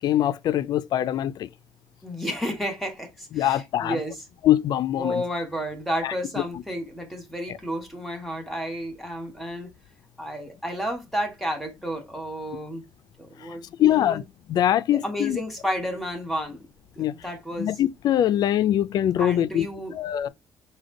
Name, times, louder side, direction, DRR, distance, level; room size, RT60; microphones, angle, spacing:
voice 1, 0.0-1.5 3.3-4.0 4.4-5.1 6.0-6.1 13.8-14.2 14.5-15.4 17.0-17.1 17.6-19.7 20.0-20.3, left 11 dB, 65° left, 0.4 m, -22 dB
voice 2, 2.0-4.2 5.0-9.7 10.2-12.8 13.2-14.2 14.9-16.7 16.9-17.8 19.2-20.0, equal, ahead, 1.4 m, -31 dB
5.1 x 2.2 x 3.7 m
cardioid pair, 110°, 8 cm